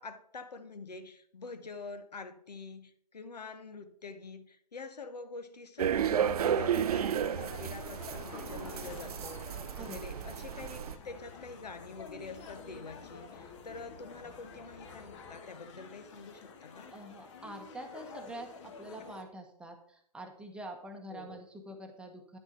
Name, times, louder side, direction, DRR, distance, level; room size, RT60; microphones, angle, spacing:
voice 1, 0.0-17.0 21.1-21.4, left 4 dB, 85° left, 10 dB, 0.9 m, -46 dB
sound 1, 5.8-11.0, right 9 dB, 65° right, 0.4 m, -32 dB
sound 2, 5.9-19.2, left 5 dB, 45° left, 1.2 m, -50 dB
sound 3, 5.9-15.4, left 4 dB, 20° left, 1.2 m, -55 dB
voice 2, 16.9-22.4, right 1 dB, 5° right, 3 dB, 0.9 m, -46 dB
9.7 x 6.2 x 3.8 m, 0.67 s
hypercardioid pair, 130°, 20 cm